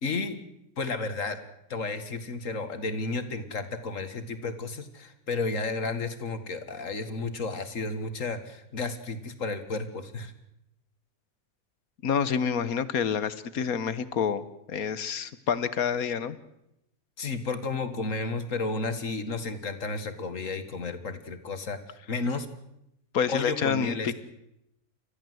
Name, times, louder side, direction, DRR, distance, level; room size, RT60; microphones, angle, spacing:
voice 1, 0.0-0.4 0.8-1.4 1.7-10.3 17.2-21.8 22.1-22.5 23.3-24.1, left 3 dB, 60° left, 10 dB, 2.2 m, -32 dB
voice 2, 12.0-16.4 23.1-24.1, left 7 dB, 80° left, 15 dB, 1.5 m, -28 dB
29.5 x 14.0 x 7.8 m, 0.82 s
omnidirectional pair, 1.5 m